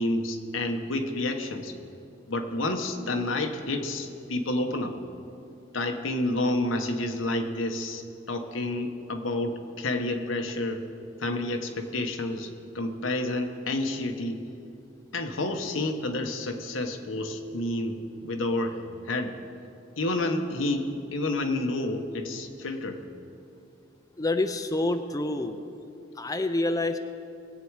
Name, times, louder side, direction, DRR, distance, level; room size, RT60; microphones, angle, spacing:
voice 1, 0.0-1.7 2.3-4.9 5.7-10.8 11.2-12.5 12.7-14.4 15.1-19.3 20.0-23.0, left 2 dB, 90° left, 5 dB, 1.1 m, -29 dB
voice 2, 24.2-25.6 26.2-27.0, left 2 dB, 20° left, 7 dB, 0.5 m, -27 dB
21.0 x 8.5 x 4.8 m, 2.7 s
head